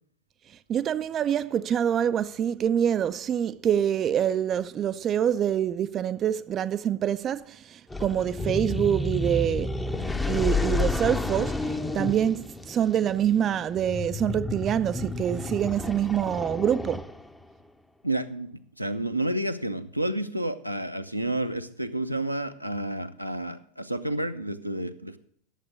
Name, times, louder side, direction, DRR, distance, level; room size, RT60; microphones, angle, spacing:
voice 1, 0.7-9.8 10.3-17.1, right 9 dB, 25° right, 0.4 m, -26 dB
sound 1, 7.9-17.4, left 3 dB, 5° left, 0.6 m, -31 dB
voice 2, 18.0-25.2, right 1 dB, 90° right, 0.7 m, -30 dB
11.5 x 7.4 x 6.4 m
figure-of-eight pair, 90°, 0 cm